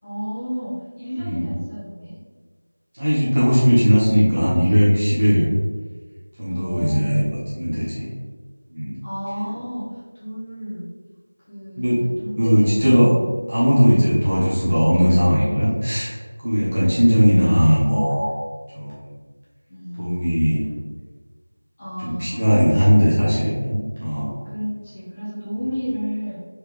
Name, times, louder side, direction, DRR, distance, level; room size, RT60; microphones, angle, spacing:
voice 1, 0.0-2.2 6.5-7.3 9.0-9.9 10.1-10.9 11.5-13.2 19.7-20.3 21.8-22.9 24.4-26.4, equal, 15° left, -11 dB, 1.8 m, -31 dB
voice 2, 2.9-5.5 6.4-8.1 8.7-9.0 11.8-12.0 12.4-13.1 13.5-16.1 16.4-18.3 18.7-19.0 20.0-20.6 22.0-24.3, equal, 30° right, -9 dB, 1.6 m, -18 dB
6.2 x 4.8 x 3.5 m, 1.5 s
figure-of-eight pair, 180°, 0 cm